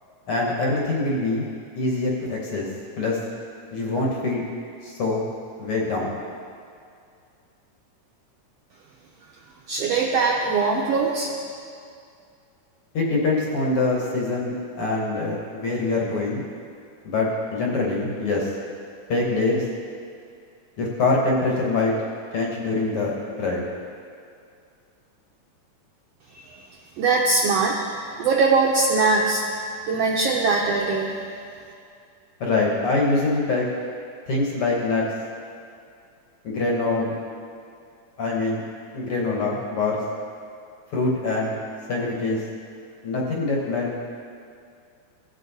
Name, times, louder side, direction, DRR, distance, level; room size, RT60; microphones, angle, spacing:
voice 1, 0.3-1.5 1.8-2.7 3.0-3.2 3.7-4.5 4.8-5.2 5.6-6.2 12.9-16.4 17.0-18.5 19.1-19.6 20.8-21.9 22.3-23.7 32.4-33.7 34.3-35.0 36.4-37.1 38.2-38.6 38.9-40.0 40.9-41.5 41.9-42.4 43.0-43.9, left 3 dB, 55° left, -3 dB, 1.8 m, -24 dB
voice 2, 9.7-11.3 27.0-27.9 28.2-29.4 29.9-31.2, right 4 dB, 80° right, -1 dB, 1.4 m, -21 dB
17.0 x 6.2 x 4.1 m, 2.4 s
omnidirectional pair, 3.7 m